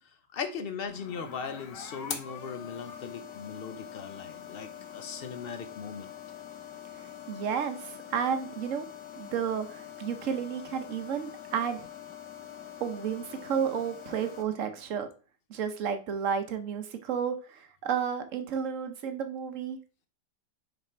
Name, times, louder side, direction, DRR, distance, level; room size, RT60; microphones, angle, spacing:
voice 1, 0.3-6.1, left 6 dB, 70° left, 8 dB, 0.5 m, -38 dB
sound 1, 0.9-14.4, left 9 dB, 85° left, 1.5 m, -44 dB
voice 2, 7.3-8.9 9.2-11.9 12.8-15.1 15.5-19.8, right 7 dB, 55° right, 8 dB, 1.0 m, -32 dB
6.5 x 3.5 x 4.3 m, 0.36 s
omnidirectional pair, 1.8 m